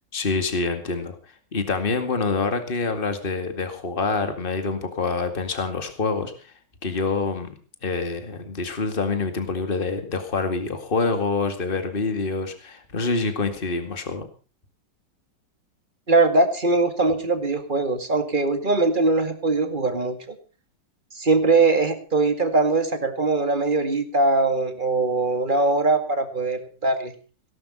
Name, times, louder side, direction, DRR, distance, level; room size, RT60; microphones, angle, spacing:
voice 1, 0.1-1.2 1.5-6.5 6.8-7.5 7.8-14.3, left 4 dB, 30° left, 7 dB, 2.3 m, -26 dB
voice 2, 16.1-20.4 21.1-27.1, right 3 dB, 25° right, 8 dB, 2.2 m, -21 dB
18.0 x 11.5 x 5.5 m, 0.37 s
omnidirectional pair, 1.9 m